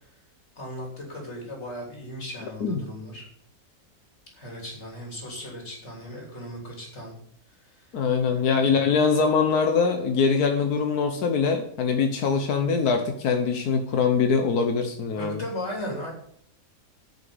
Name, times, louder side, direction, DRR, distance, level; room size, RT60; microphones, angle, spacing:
voice 1, 0.6-3.2 4.4-7.1 7.6-8.7 15.2-16.1, left 1 dB, 45° left, 0 dB, 3.7 m, -37 dB
voice 2, 7.9-15.4, left 5 dB, 90° left, 5 dB, 1.5 m, -23 dB
8.9 x 6.9 x 7.9 m, 0.66 s
omnidirectional pair, 1.6 m